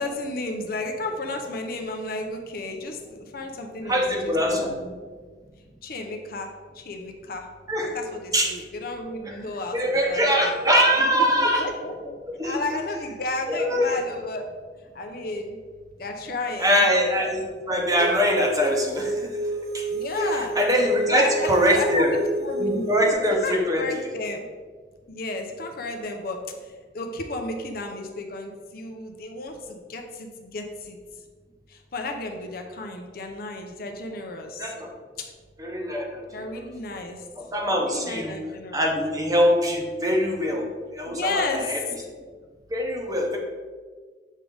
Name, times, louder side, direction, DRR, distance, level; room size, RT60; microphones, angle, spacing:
voice 1, 0.0-4.9 5.8-7.5 7.8-10.5 10.9-12.2 12.4-14.4 14.9-15.6 16.0-16.8 19.9-20.5 21.1-22.9 23.4-24.4 25.1-31.0 31.7-34.7 36.3-37.2 37.7-38.9 41.1-41.7, left 2 dB, 55° left, 3 dB, 0.7 m, -33 dB
voice 2, 3.8-4.8 7.7-7.9 8.3-8.5 9.2-9.4 9.7-11.7 12.4-12.6 13.5-14.0 16.6-19.3 19.7-19.8 20.2-22.1 22.6-23.8 34.6-34.9 35.6-36.7 37.4-38.4 38.7-40.6 40.9-41.8 42.7-43.4, equal, 20° right, 0 dB, 0.9 m, -23 dB
sound 1, 18.0-23.1, right 2 dB, 60° right, 0.5 m, -29 dB
7.3 x 3.4 x 3.9 m, 1.5 s
head